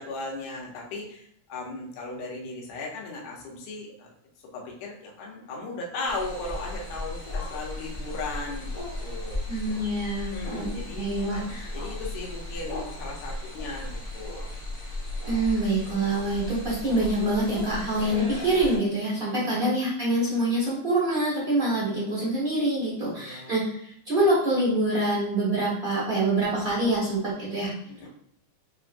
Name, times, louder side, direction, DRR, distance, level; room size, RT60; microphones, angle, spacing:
voice 1, 0.0-4.1 4.5-9.4 10.3-14.4 19.4-19.6 23.0-23.5 27.8-28.1, left 2 dB, 70° left, -2 dB, 2.0 m, -37 dB
sound 1, 6.1-18.8, left 1 dB, 50° left, 0.5 m, -36 dB
voice 2, 9.5-10.7 10.9-11.7 15.2-27.7, right 1 dB, 35° right, -7 dB, 0.8 m, -25 dB
5.9 x 3.1 x 2.5 m, 0.70 s
omnidirectional pair, 3.3 m